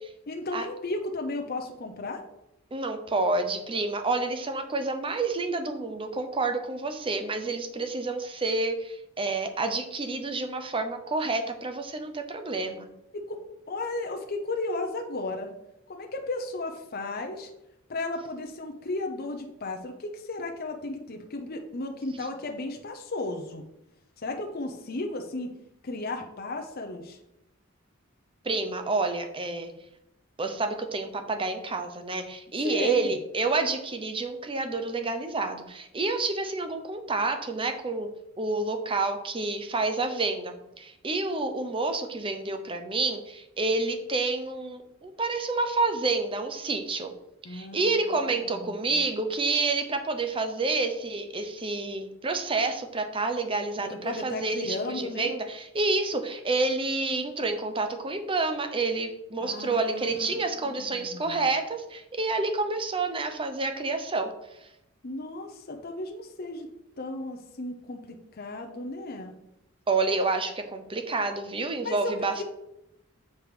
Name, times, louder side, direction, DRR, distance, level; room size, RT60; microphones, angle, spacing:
voice 1, 0.3-2.2 13.1-13.4 13.7-15.5 15.9-17.5 17.9-23.6 24.2-25.5 25.8-27.2 32.6-33.1 47.4-48.0 48.4-49.0 53.8-55.3 59.4-60.3 60.6-61.4 65.0-66.7 67.0-69.3 71.8-72.4, left 2 dB, 50° left, 3 dB, 0.8 m, -34 dB
voice 2, 2.7-12.9 28.4-29.7 30.4-38.1 38.4-47.1 47.5-64.3 69.9-72.4, right 3 dB, 25° right, 6 dB, 0.7 m, -29 dB
7.0 x 4.7 x 4.9 m, 0.86 s
head